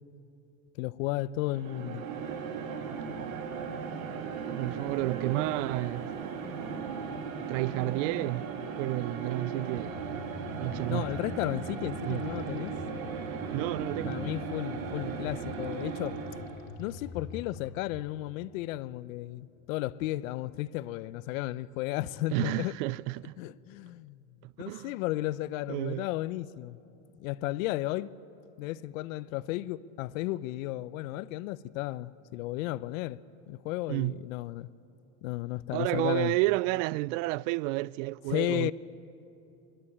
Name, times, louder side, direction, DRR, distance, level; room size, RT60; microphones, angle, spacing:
voice 1, 0.8-2.0 10.9-12.7 14.1-16.2 16.8-22.7 23.4-24.3 24.6-26.8 27.2-28.1 28.6-33.2 33.5-34.7 35.2-36.4 38.3-38.7, left 16 dB, 75° left, 0.7 m, -34 dB
sound 1, 1.4-16.7, right 6 dB, 85° right, 2.2 m, -37 dB
voice 2, 4.5-6.1 7.5-8.5 8.8-10.2 10.6-11.1 12.0-12.2 13.5-14.2 15.0-15.1 22.3-23.3 24.4-24.9 25.7-26.1 33.9-34.1 35.7-38.7, right 21 dB, 70° right, 0.5 m, -31 dB
sound 2, 9.8-17.8, left 5 dB, 60° left, 2.8 m, -45 dB
27.0 x 12.5 x 8.7 m
supercardioid pair, 125°, 40 cm